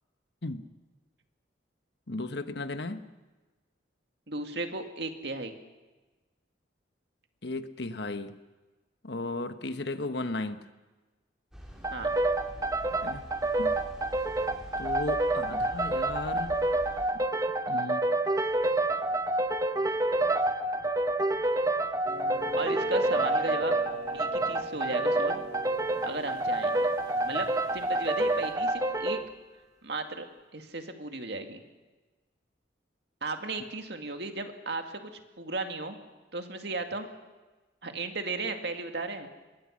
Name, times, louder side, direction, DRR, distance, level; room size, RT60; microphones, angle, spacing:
voice 1, 2.1-3.1 7.4-8.4 9.0-10.7 13.0-13.2 13.6-13.8 14.8-16.6 17.1-17.2 17.7-18.0, left 2 dB, 65° left, 9 dB, 1.2 m, -35 dB
voice 2, 4.3-5.6 11.9-12.1 22.6-23.8 24.1-25.4 26.0-26.9 27.2-27.5 27.7-29.2 29.8-30.3 30.5-31.6 33.2-35.1 35.4-36.0 36.3-37.1 37.8-39.3, right 3 dB, 60° right, 5 dB, 2.2 m, -35 dB
sound 1, 11.5-17.1, equal, 5° right, 4.5 m, -46 dB
sound 2, 11.8-29.3, right 2 dB, 20° right, 0.9 m, -28 dB
sound 3, 22.0-28.5, right 1 dB, 35° right, 3.5 m, -42 dB
25.0 x 21.5 x 6.4 m, 1.2 s
head